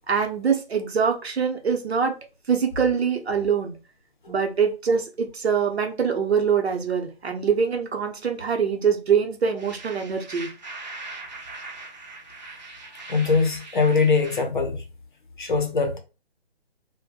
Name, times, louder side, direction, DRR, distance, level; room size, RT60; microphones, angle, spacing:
voice 1, 0.1-2.1 2.5-3.8 4.3-10.5, right 6 dB, 75° right, 0.8 m, -24 dB
sound 1, 9.6-14.4, right 3 dB, 40° right, 0.6 m, -40 dB
voice 2, 13.1-14.8 15.4-16.0, left 4 dB, 50° left, 0.6 m, -22 dB
2.6 x 2.2 x 2.7 m
hypercardioid pair, 170°, 32 cm